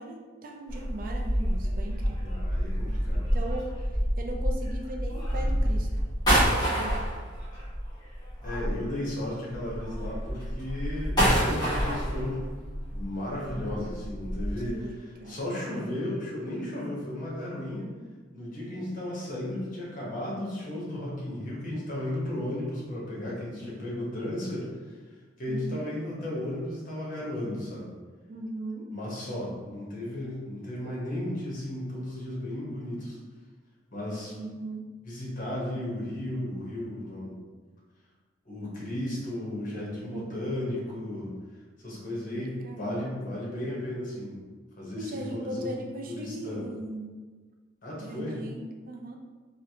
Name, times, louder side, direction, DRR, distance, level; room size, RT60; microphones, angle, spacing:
voice 1, 0.0-2.2 3.3-3.7 4.2-5.9 6.3-7.1 14.6-15.7 25.5-25.9 28.3-28.9 34.4-34.9 40.1-40.4 42.3-43.1 45.0-47.2 48.0-49.2, right 1 dB, 45° right, 1 dB, 0.3 m, -38 dB
sound 1, 0.7-9.1 9.5-14.7, equal, 20° left, 1.2 m, -28 dB
voice 2, 2.2-3.3 8.4-12.5 12.9-14.7 15.3-17.9 18.3-24.9 25.4-27.9 28.9-33.2 33.9-34.3 35.0-37.4 38.4-41.3 41.8-44.4 44.8-45.7 46.0-46.6 47.8-48.4, left 1 dB, 45° left, -5 dB, 1.0 m, -34 dB
3.2 x 2.4 x 2.8 m, 1.4 s
head